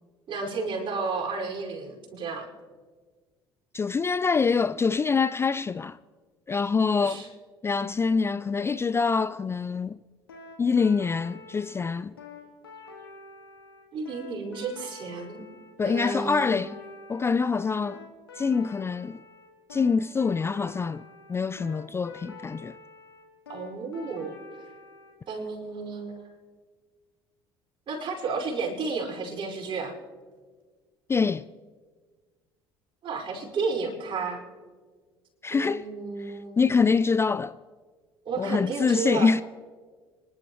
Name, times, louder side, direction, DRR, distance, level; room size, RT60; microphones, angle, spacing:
voice 1, 0.3-2.5 7.0-7.3 13.9-15.4 15.8-16.7 23.5-24.3 25.3-26.3 27.9-29.9 33.0-34.4 35.5-36.5 38.3-39.3, right 4 dB, 45° right, 5.3 m, -32 dB
voice 2, 3.7-6.0 6.5-7.2 7.6-10.0 10.6-12.1 15.8-16.7 17.1-18.0 18.4-19.2 19.7-21.0 21.3-22.7 31.1-31.4 35.4-35.9 36.2-37.6 38.4-39.4, left 5 dB, 20° left, 0.3 m, -25 dB
sound 1, 10.3-25.1, left 3 dB, 90° left, 2.0 m, -47 dB
26.5 x 11.5 x 3.1 m
hypercardioid pair, 60°, 12 cm